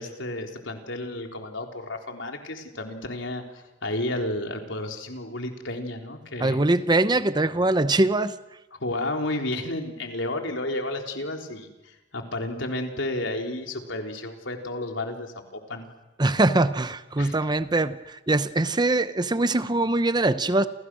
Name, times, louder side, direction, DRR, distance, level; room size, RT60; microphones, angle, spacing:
voice 1, 0.0-6.6 8.7-15.9 17.2-17.4, left 1 dB, 80° left, 3 dB, 3.9 m, -32 dB
voice 2, 6.4-8.3 16.2-20.7, right 2 dB, 20° right, 12 dB, 0.8 m, -22 dB
29.5 x 29.0 x 6.3 m, 1.1 s
head